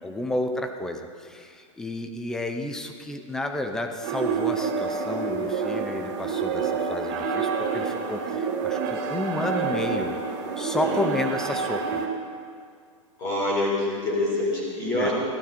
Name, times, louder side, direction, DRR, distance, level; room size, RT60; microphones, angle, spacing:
voice 1, 0.0-10.2 10.6-12.0 14.9-15.1, left 2 dB, 5° left, 6 dB, 0.5 m, -31 dB
sound 1, 4.0-12.1, right 5 dB, 30° right, 1.5 m, -28 dB
voice 2, 10.8-11.2 13.2-15.1, left 1 dB, 20° left, -4 dB, 4.6 m, -26 dB
18.5 x 15.0 x 4.3 m, 2.2 s
supercardioid pair, 175°, 17 cm